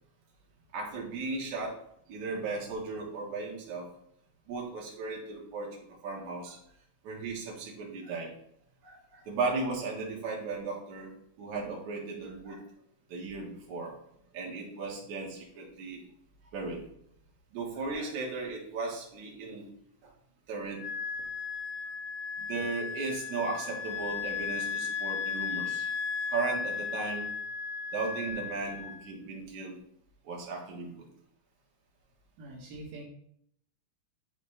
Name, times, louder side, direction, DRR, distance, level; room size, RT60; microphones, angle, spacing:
voice 1, 0.7-1.8 2.1-3.9 4.5-6.6 7.0-8.3 8.8-12.6 13.1-13.9 14.3-16.0 16.5-16.8 17.5-19.7 20.0-20.1 20.5-20.8 22.4-25.9 26.3-27.3 27.9-29.8 30.2-31.0, right 3 dB, 70° right, -2 dB, 3.1 m, -36 dB
Wind instrument woodwind instrument, 20.8-29.1, left 6 dB, 70° left, 1.9 m, -35 dB
voice 2, 21.2-21.9 32.4-33.0, right 2 dB, 90° right, -3 dB, 2.8 m, -47 dB
10.5 x 4.2 x 3.2 m, 0.72 s
omnidirectional pair, 3.5 m